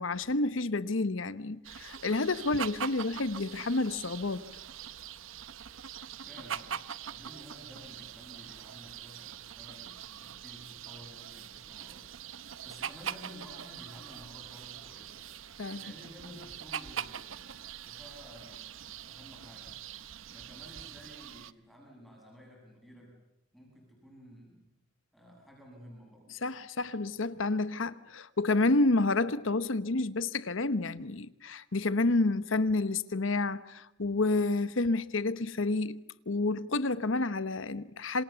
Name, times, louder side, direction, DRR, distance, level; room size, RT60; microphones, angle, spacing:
voice 1, 0.0-4.5 15.6-15.8 26.4-36.0 36.3-38.2, left 2 dB, 75° left, 1.0 m, -29 dB
sound 1, 1.6-21.5, right 8 dB, 80° right, 0.8 m, -43 dB
voice 2, 6.2-6.8 7.1-12.1 12.6-15.2 15.8-23.2 23.5-24.7 25.1-26.3, equal, ahead, 7.3 m, -52 dB
27.0 x 27.0 x 7.0 m
head